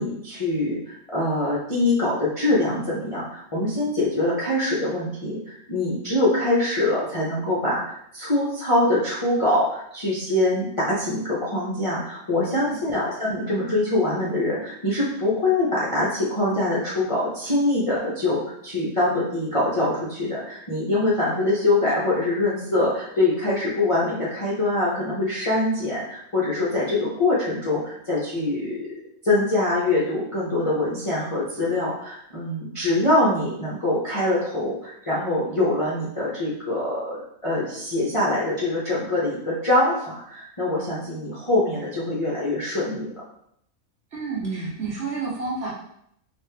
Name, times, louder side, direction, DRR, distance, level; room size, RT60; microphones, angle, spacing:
voice 1, 0.0-28.9 29.2-37.2 37.4-43.1 44.4-44.7, left 2 dB, 35° left, -8 dB, 0.5 m, -24 dB
voice 2, 44.1-45.7, right 4 dB, 60° right, -4 dB, 1.2 m, -31 dB
3.4 x 2.4 x 3.2 m, 0.73 s
omnidirectional pair, 1.5 m